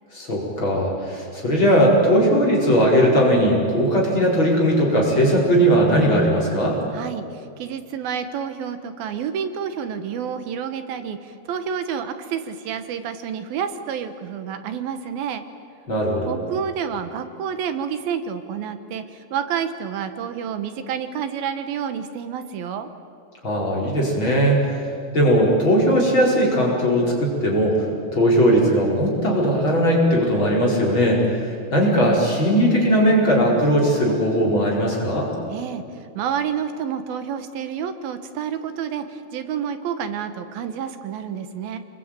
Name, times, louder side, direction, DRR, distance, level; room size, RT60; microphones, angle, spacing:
voice 1, 0.1-6.8 15.9-16.3 23.4-24.7 25.1-27.9 28.1-35.3, equal, 30° left, -3 dB, 5.4 m, -18 dB
voice 2, 6.9-15.4 16.3-22.9 35.5-35.8 36.1-41.8, right 7 dB, 80° right, 9 dB, 3.2 m, -29 dB
28.5 x 21.5 x 9.1 m, 2.5 s
omnidirectional pair, 4.2 m